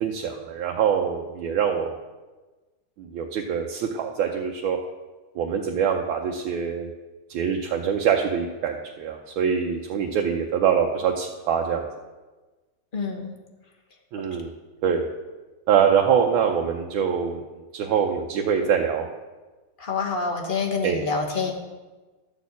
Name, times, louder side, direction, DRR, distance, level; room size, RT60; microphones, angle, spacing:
voice 1, 0.0-1.9 3.0-4.8 5.4-6.9 7.3-11.9 14.1-14.5 14.8-15.1 15.7-17.4 17.7-19.1 20.8-21.0, right 7 dB, 80° right, 2 dB, 1.6 m, -24 dB
voice 2, 12.9-13.3 19.8-21.5, left 4 dB, 30° left, 1 dB, 1.1 m, -27 dB
12.5 x 4.3 x 8.2 m, 1.2 s
omnidirectional pair, 2.2 m